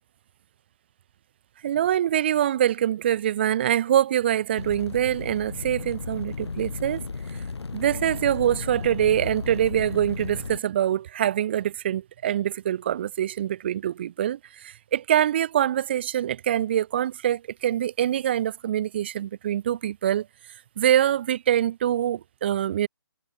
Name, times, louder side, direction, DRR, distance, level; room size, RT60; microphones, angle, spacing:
voice 1, 1.6-7.0 7.7-20.3 20.8-22.9, right 11 dB, 25° right, 1.3 m, -24 dB
sound 1, 4.6-10.6, left 4 dB, 80° left, 5.2 m, -34 dB
hypercardioid pair, 170°, 14 cm